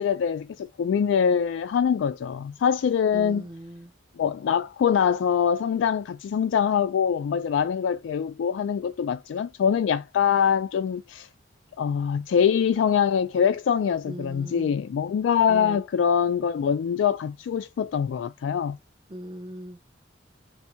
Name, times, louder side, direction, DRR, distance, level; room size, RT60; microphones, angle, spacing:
voice 1, 0.0-3.4 4.2-11.3 11.8-18.8, left 7 dB, 90° left, 0.3 m, -24 dB
voice 2, 3.1-3.9 14.1-14.8 15.5-15.8 19.1-19.9, right 1 dB, 25° right, 0.7 m, -39 dB
7.0 x 2.7 x 2.2 m
head